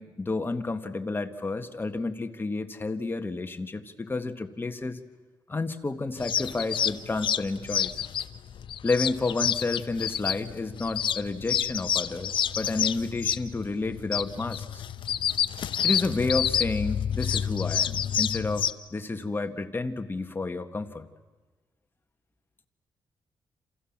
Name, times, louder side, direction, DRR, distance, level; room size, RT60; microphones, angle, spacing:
voice 1, 0.0-5.0 5.5-8.0 8.8-14.8 15.8-21.1, left 3 dB, 25° left, 7 dB, 1.7 m, -31 dB
sound 1, 6.2-18.7, left 9 dB, 70° left, 0.9 m, -29 dB
29.0 x 27.5 x 7.4 m, 1.2 s
cardioid pair, 105°, 9 cm